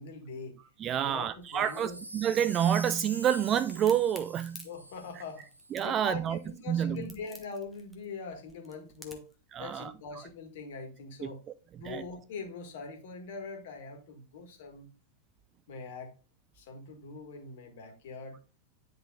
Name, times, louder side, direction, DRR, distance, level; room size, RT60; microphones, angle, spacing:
voice 1, 0.0-0.6 1.0-2.0 4.6-5.4 5.8-9.3 9.6-11.4 11.8-14.9 15.7-16.1 16.5-18.4, left 4 dB, 55° left, 1.6 m, -42 dB
voice 2, 0.8-4.7 5.7-6.4 6.7-7.1 9.5-9.9 11.2-11.5 11.8-12.0, right 9 dB, 30° right, 0.3 m, -28 dB
Wind chime, 1.4-5.8 6.4-6.5, right 1 dB, 85° right, 0.7 m, -45 dB
Crack, 3.7-9.4, left 1 dB, ahead, 1.0 m, -50 dB
10.0 x 3.9 x 2.3 m
figure-of-eight pair, 90°, 0 cm